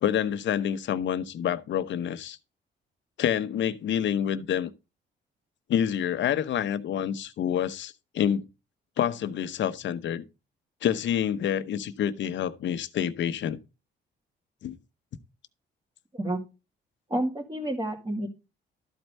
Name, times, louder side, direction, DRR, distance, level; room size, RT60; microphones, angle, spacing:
voice 1, 0.0-2.4 3.2-4.7 5.7-8.5 9.0-10.2 10.8-13.6 14.6-14.8, left 9 dB, 65° left, 0.9 m, -27 dB
voice 2, 17.1-18.3, right 1 dB, 20° right, 2.5 m, -29 dB
13.0 x 4.5 x 5.4 m
cardioid pair, 90°, 20 cm